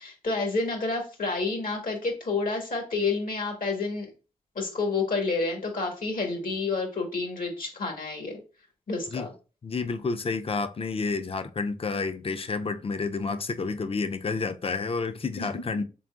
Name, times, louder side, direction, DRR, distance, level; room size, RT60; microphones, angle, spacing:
voice 1, 0.0-4.1 4.5-8.4 8.9-9.3 15.4-15.5, left 3 dB, 75° left, 1.4 m, -29 dB
voice 2, 9.6-15.8, left 4 dB, 40° left, 0.4 m, -30 dB
3.8 x 3.6 x 2.4 m
cardioid pair, 40°, 14 cm